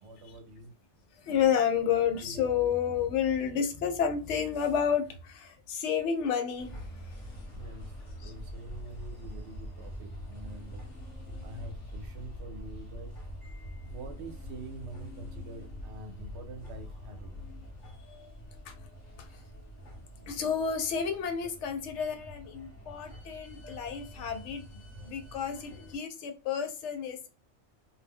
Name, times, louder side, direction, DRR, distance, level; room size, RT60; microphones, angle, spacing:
voice 1, 0.0-0.7 7.5-7.9 8.2-10.8 11.4-13.1 13.8-17.3, right 2 dB, 75° right, 0.9 m, -46 dB
voice 2, 1.2-6.7 8.2-8.3 18.1-18.3 18.7-18.8 20.3-24.6 25.0-27.3, left 7 dB, 85° left, 0.9 m, -30 dB
sound 1, 6.6-26.0, left 1 dB, 40° left, 1.0 m, -44 dB
2.3 x 2.1 x 3.5 m
omnidirectional pair, 1.2 m